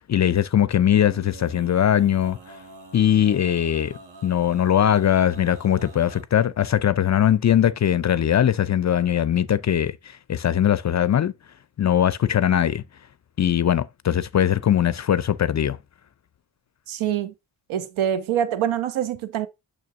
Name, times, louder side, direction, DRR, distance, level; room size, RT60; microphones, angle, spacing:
voice 1, 0.1-2.4 2.9-11.3 11.8-12.8 13.4-15.8, left 10 dB, 35° left, 0.5 m, -20 dB
Male singing, 0.9-6.2, right 3 dB, 55° right, 1.7 m, -45 dB
voice 2, 16.9-17.3 17.7-19.5, right 10 dB, 75° right, 1.0 m, -25 dB
6.5 x 6.1 x 2.5 m
hypercardioid pair, 40°, 49 cm